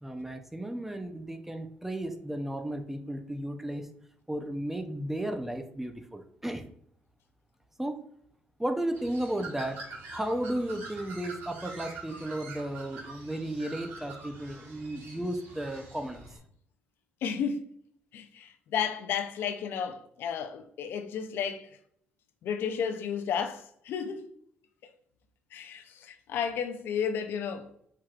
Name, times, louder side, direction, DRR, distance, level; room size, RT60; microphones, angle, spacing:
voice 1, 0.0-3.9 4.3-6.7 7.8-8.0 8.6-9.8 10.1-16.2, right 1 dB, 10° right, 0.6 m, -34 dB
Bird, 8.9-16.4, right 3 dB, 85° right, 1.1 m, -45 dB
voice 2, 17.2-17.6 18.1-21.7 22.4-24.3 25.5-27.7, left 7 dB, 80° left, 0.5 m, -32 dB
4.6 x 4.6 x 2.4 m
cardioid pair, 95°, 4 cm